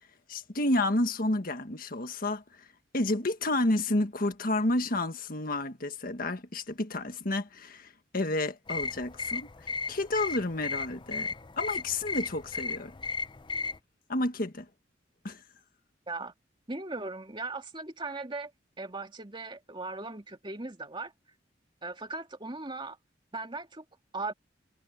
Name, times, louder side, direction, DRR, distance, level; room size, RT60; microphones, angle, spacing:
voice 1, 0.3-2.7 2.9-12.9 14.1-14.7 15.2-15.4, left 2 dB, 50° left, 1.7 m, -30 dB
sound 1, 8.7-13.8, left 4 dB, 25° left, 0.5 m, -35 dB
voice 2, 16.7-18.5 18.8-21.1 21.8-23.0 23.3-23.8 24.1-24.3, right 3 dB, 25° right, 2.4 m, -38 dB
head